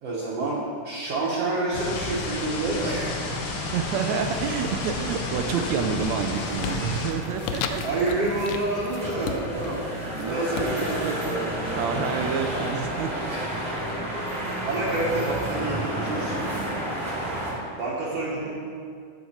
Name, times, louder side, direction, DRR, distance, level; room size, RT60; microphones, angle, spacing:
voice 1, 0.0-3.1 5.6-5.7 7.8-9.8 10.2-10.9 11.2-11.5 13.3-13.4 14.2-14.3 14.6-16.4 17.8-18.6, right 2 dB, 60° right, -7 dB, 2.0 m, -28 dB
sound 1, 1.7-7.1, left 3 dB, 70° left, 1.3 m, -32 dB
sound 2, 2.6-17.5, right 1 dB, 10° right, 1.8 m, -32 dB
voice 2, 3.7-7.8 9.9-11.4 11.7-13.1 18.1-18.6, right 6 dB, 80° right, 5 dB, 1.7 m, -29 dB
sound 3, 5.3-5.8 6.1-12.8, left 7 dB, 85° left, 2.1 m, -37 dB
10.0 x 7.7 x 4.4 m, 2.1 s
omnidirectional pair, 3.6 m